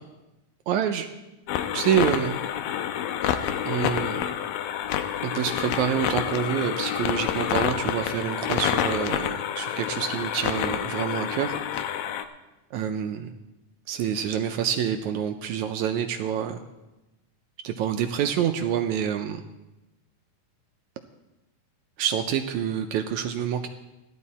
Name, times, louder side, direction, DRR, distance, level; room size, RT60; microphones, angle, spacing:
voice 1, 0.7-1.1 1.7-2.4 3.6-4.2 5.2-11.6 12.7-13.3 13.9-16.6 17.6-19.4 22.0-23.7, right 9 dB, 85° right, 6 dB, 1.7 m, -27 dB
sound 1, 1.5-12.2, left 10 dB, 85° left, 2.4 m, -28 dB
15.0 x 12.0 x 4.2 m, 1.0 s
omnidirectional pair, 4.0 m